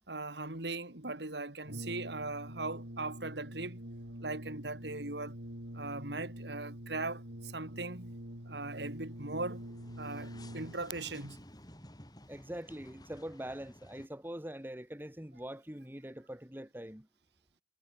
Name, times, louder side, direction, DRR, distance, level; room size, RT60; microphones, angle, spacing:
voice 1, 0.1-3.8 4.2-5.3 5.7-8.1 8.4-9.6 10.0-11.4, right 2 dB, 70° right, 3.2 m, -39 dB
Brass instrument, 1.6-11.0, right 1 dB, 85° right, 6.8 m, -45 dB
sound 1, 3.9-4.6 4.9-14.1, left 1 dB, 20° left, 6.9 m, -56 dB
voice 2, 12.3-17.1, right 1 dB, 10° right, 1.4 m, -43 dB
head